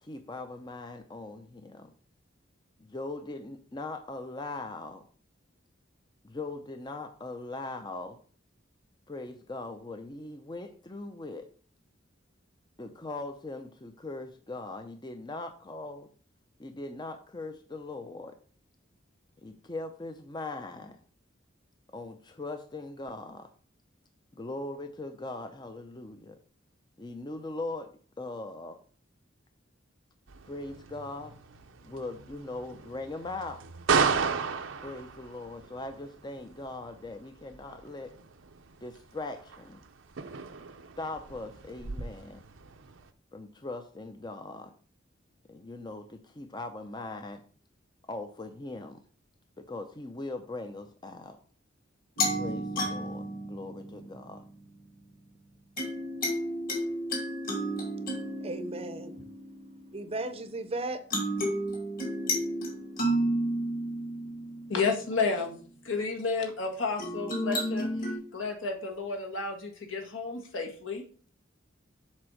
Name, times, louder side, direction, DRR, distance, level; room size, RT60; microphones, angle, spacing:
voice 1, 0.0-1.9 2.8-5.1 6.2-8.2 9.1-11.5 12.8-16.1 16.6-18.4 19.4-21.0 21.9-23.5 24.3-26.4 27.0-27.9 28.2-28.8 30.5-31.4 31.8-33.6 34.8-38.1 38.8-39.8 41.0-42.4 43.3-44.7 45.5-47.4 48.1-49.0 49.6-51.4 52.3-54.4, left 2 dB, 20° left, 0.6 m, -40 dB
sound 1, 30.3-43.1, right 5 dB, 75° right, 0.7 m, -35 dB
sound 2, 52.2-54.4 55.8-60.6 61.1-65.3 67.0-68.2, equal, 45° left, 2.3 m, -32 dB
voice 2, 58.4-59.2 59.9-61.0, right 2 dB, 30° right, 0.7 m, -35 dB
voice 3, 64.7-65.6 65.9-67.9 68.3-71.0, left 4 dB, 75° left, 1.8 m, -31 dB
7.4 x 4.3 x 6.3 m
head